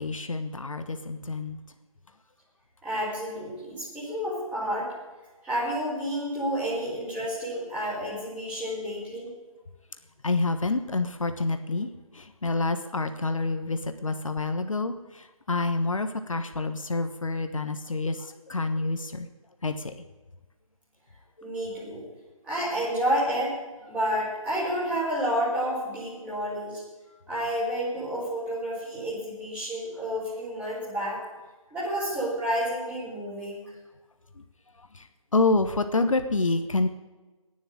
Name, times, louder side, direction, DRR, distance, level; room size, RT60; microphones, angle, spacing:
voice 1, 0.0-1.6 10.2-19.3 19.6-19.9 21.4-21.5 34.4-34.5 34.8-36.9, left 3 dB, 65° left, 8 dB, 1.2 m, -28 dB
voice 2, 2.8-4.9 5.4-9.3 21.4-22.0 22.4-23.5 23.9-26.8 27.3-31.2 31.7-33.6, equal, 5° right, -8 dB, 4.7 m, -30 dB
11.0 x 9.9 x 9.8 m, 1.2 s
figure-of-eight pair, 150°, 18 cm